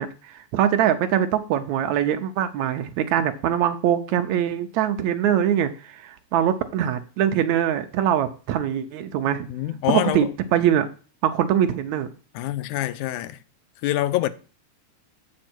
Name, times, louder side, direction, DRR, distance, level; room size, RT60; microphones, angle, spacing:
voice 1, 0.0-9.5 9.9-10.3 10.5-10.9 11.2-12.1, right 10 dB, 75° right, 2.0 m, -23 dB
voice 2, 9.5-10.3 12.4-13.4 13.8-14.3, left 14 dB, 80° left, 2.0 m, -25 dB
8.3 x 6.4 x 4.4 m
omnidirectional pair, 3.6 m